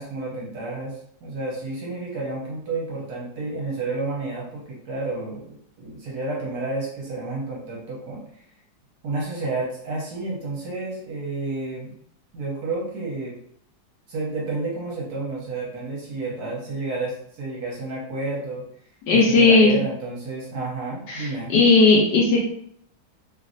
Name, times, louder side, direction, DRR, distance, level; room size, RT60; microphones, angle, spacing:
voice 1, 0.0-8.4 9.0-12.0 12.3-13.4 14.1-18.7 19.1-21.5, right 2 dB, 65° right, -4 dB, 1.1 m, -30 dB
voice 2, 19.1-19.8 21.1-22.5, left 3 dB, 75° left, -2 dB, 1.0 m, -16 dB
3.0 x 2.5 x 2.5 m, 0.67 s
omnidirectional pair, 2.2 m